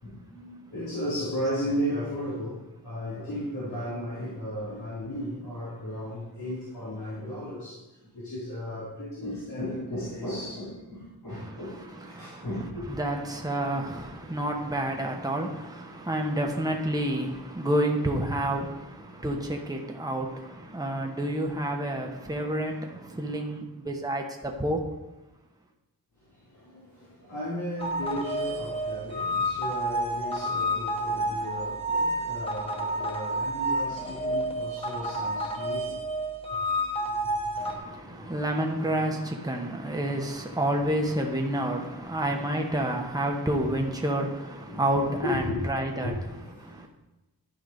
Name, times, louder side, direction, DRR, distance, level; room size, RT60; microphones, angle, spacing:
voice 1, 0.0-13.0 26.2-36.1 36.5-36.6 37.1-37.3 37.6-37.7 38.2-38.3 42.3-42.6 44.3-46.7, equal, 85° left, -9 dB, 3.0 m, -35 dB
voice 2, 12.0-12.5 12.9-24.8 37.5-46.1 46.6-46.9, right 1 dB, 10° right, 1 dB, 1.2 m, -29 dB
sound 1, 27.8-37.8, right 1 dB, 15° left, 1.5 m, -30 dB
12.0 x 4.7 x 5.1 m, 1.0 s
wide cardioid pair, 75°, 39 cm